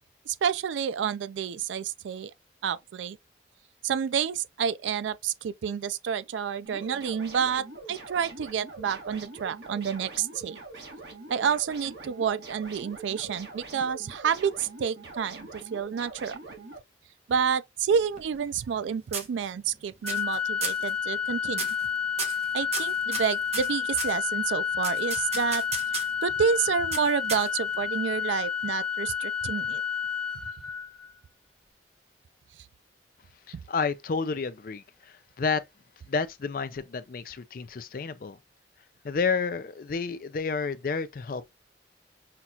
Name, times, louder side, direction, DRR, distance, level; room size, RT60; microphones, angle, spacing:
voice 1, 0.3-2.3 2.6-3.2 3.8-10.6 11.3-16.4 17.3-21.7 22.5-25.6 26.2-29.8, right 7 dB, 90° right, 0.3 m, -29 dB
sound 1, 6.7-16.8, right 3 dB, 65° right, 1.5 m, -44 dB
sound 2, 17.9-18.8 19.1-19.7 20.1-20.4 20.6-20.9 21.5-21.9 22.2-24.2 24.8-26.2 26.9-27.8, right 5 dB, 35° right, 0.9 m, -34 dB
Organ, 20.0-31.1, left 7 dB, 5° left, 0.6 m, -30 dB
voice 2, 33.5-35.6 36.1-38.4 39.0-41.5, left 5 dB, 50° left, 0.4 m, -30 dB
5.8 x 2.4 x 2.6 m
head